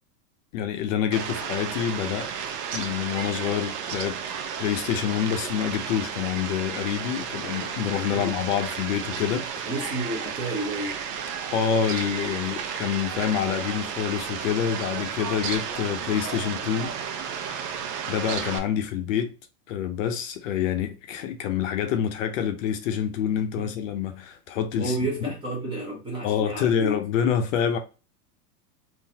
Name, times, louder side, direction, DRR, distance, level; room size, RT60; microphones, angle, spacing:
voice 1, 0.5-2.3 2.7-4.2 4.6-9.7 11.5-16.9 17.4-17.8 18.1-19.3 19.7-25.3 26.2-27.8, left 9 dB, 50° left, 0.7 m, -27 dB
Fowl, 1.1-18.6, right 7 dB, 70° right, 0.8 m, -33 dB
voice 2, 9.6-11.1 23.6-23.7 24.8-27.0, right 1 dB, 10° right, 0.6 m, -31 dB
3.8 x 2.6 x 2.8 m
supercardioid pair, 155°, 49 cm